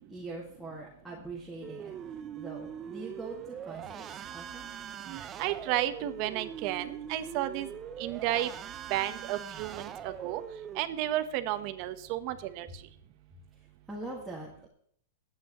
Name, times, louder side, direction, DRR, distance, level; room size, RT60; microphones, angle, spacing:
voice 1, 0.1-4.7 13.5-14.7, right 2 dB, 5° right, -5 dB, 2.0 m, -43 dB
sound 1, 1.6-10.8, right 9 dB, 20° right, 0.6 m, -42 dB
voice 2, 5.1-7.7 8.0-8.5 8.9-10.4 10.7-12.7, right 14 dB, 40° right, 10 dB, 1.1 m, -32 dB
22.5 x 8.9 x 3.1 m, 0.64 s
hypercardioid pair, 150°, 0 cm